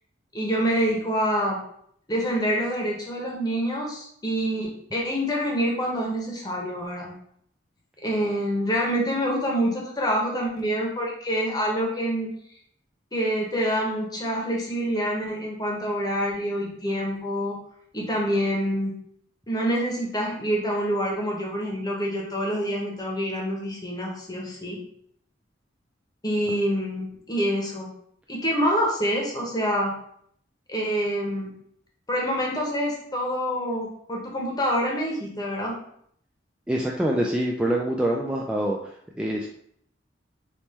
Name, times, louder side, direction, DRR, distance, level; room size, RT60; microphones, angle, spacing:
voice 1, 0.3-1.6 2.1-7.1 8.0-12.3 13.1-17.6 17.9-18.9 19.5-24.8 26.2-27.9 28.3-29.9 30.7-31.5 32.1-35.7, equal, 20° left, -2 dB, 0.9 m, -26 dB
voice 2, 36.7-39.5, right 1 dB, 5° right, -2 dB, 0.3 m, -25 dB
3.5 x 3.0 x 4.1 m, 0.67 s
head